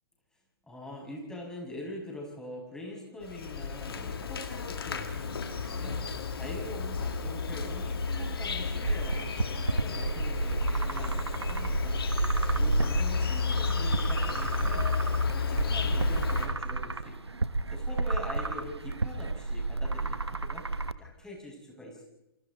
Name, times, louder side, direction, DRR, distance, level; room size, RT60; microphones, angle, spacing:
voice 1, 0.7-6.0 6.3-12.0 12.5-14.9 15.3-17.1 17.7-22.0, left 1 dB, 5° left, -1 dB, 6.2 m, -43 dB
Insect, 3.2-16.5, left 5 dB, 65° left, 2.5 m, -32 dB
sound 1, 8.8-20.9, right 3 dB, 90° right, 0.9 m, -31 dB
28.5 x 26.0 x 4.1 m, 0.92 s
figure-of-eight pair, 120°, 13 cm